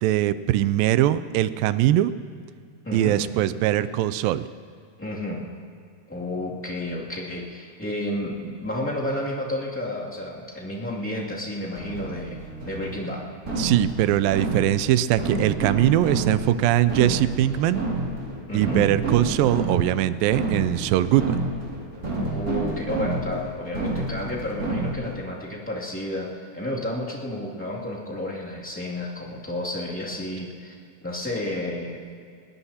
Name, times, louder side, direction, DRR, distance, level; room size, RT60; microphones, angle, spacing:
voice 1, 0.0-2.1 2.9-4.5 13.6-17.8 18.5-21.4, right 13 dB, 85° right, 14 dB, 2.3 m, -21 dB
voice 2, 2.8-3.2 5.0-5.5 6.1-12.4 12.6-13.2 18.5-18.9 22.2-30.7 31.0-32.0, left 1 dB, 5° left, -6 dB, 1.7 m, -31 dB
sound 1, 11.7-25.2, right 2 dB, 25° right, 2.7 m, -30 dB
21.0 x 19.0 x 2.9 m, 2.3 s
omnidirectional pair, 4.0 m